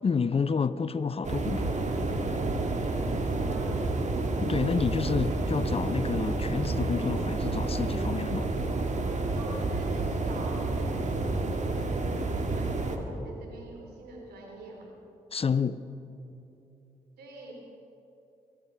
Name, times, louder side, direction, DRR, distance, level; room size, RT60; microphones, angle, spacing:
voice 1, 0.0-1.8 4.4-8.5 15.3-15.8, left 5 dB, 35° left, 0.6 m, -29 dB
sound 1, 1.2-13.0, right 2 dB, 45° right, 1.8 m, -29 dB
voice 2, 3.3-3.7 9.3-14.9 17.2-17.5, right 2 dB, 80° right, 3.2 m, -44 dB
23.5 x 12.5 x 4.7 m
supercardioid pair, 45°, 16 cm